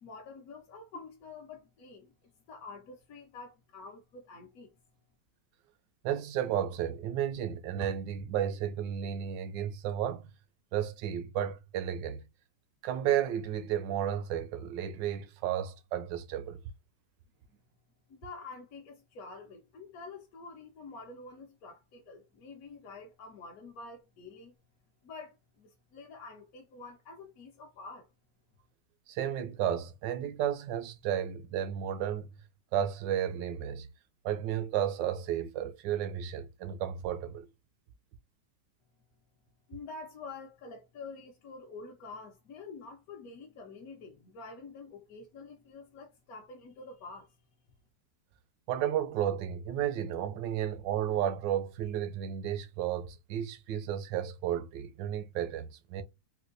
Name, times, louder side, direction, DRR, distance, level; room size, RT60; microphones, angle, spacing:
voice 1, 0.0-4.7 18.1-24.5 25.0-28.1 39.7-47.3, left 3 dB, 65° left, 1.0 m, -47 dB
voice 2, 6.0-10.2 10.7-12.2 12.8-16.6 29.1-32.3 32.7-33.9 34.2-37.5 48.7-56.0, right 10 dB, 85° right, 1.2 m, -33 dB
4.3 x 2.2 x 2.5 m
omnidirectional pair, 1.9 m